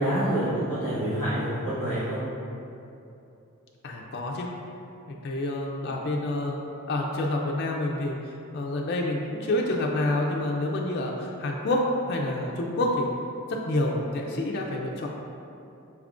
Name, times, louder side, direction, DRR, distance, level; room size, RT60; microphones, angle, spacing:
voice 1, 0.0-2.2, right 1 dB, 55° right, -13 dB, 1.0 m, -27 dB
voice 2, 3.8-4.5 5.1-8.2 8.5-13.1 13.5-15.1, left 1 dB, 50° left, -1 dB, 0.4 m, -28 dB
6.0 x 3.6 x 2.4 m, 2.8 s
head